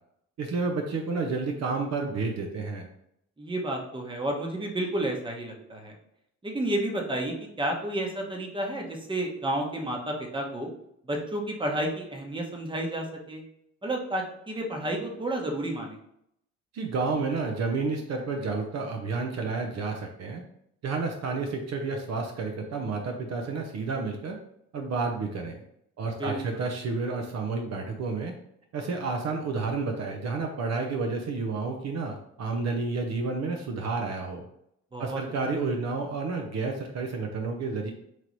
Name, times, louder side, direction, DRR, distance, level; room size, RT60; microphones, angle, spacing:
voice 1, 0.4-2.9 16.7-20.4 20.8-24.4 24.7-25.6 26.0-28.3 28.7-34.4 35.0-37.9, right 4 dB, 60° right, 3 dB, 0.7 m, -30 dB
voice 2, 3.4-5.9 6.4-10.7 11.1-13.4 13.8-16.0 26.2-26.6 34.9-35.2, right 1 dB, 15° right, 1 dB, 0.9 m, -31 dB
3.1 x 3.0 x 3.9 m, 0.74 s
cardioid pair, 90°, 30 cm